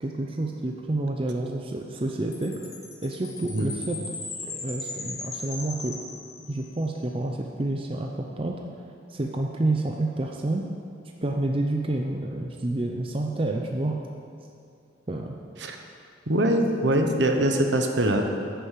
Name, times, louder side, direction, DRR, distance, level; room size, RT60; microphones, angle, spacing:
voice 1, 0.0-2.7 3.0-4.0 4.4-6.0 6.5-8.5 9.1-10.6 11.2-14.0 15.1-15.3, right 2 dB, 30° right, 1 dB, 0.6 m, -29 dB
Chime, 2.3-6.8, left 3 dB, 20° left, 1.2 m, -38 dB
voice 2, 16.3-18.2, right 1 dB, 65° right, 4 dB, 1.0 m, -23 dB
10.0 x 6.8 x 7.5 m, 2.5 s
head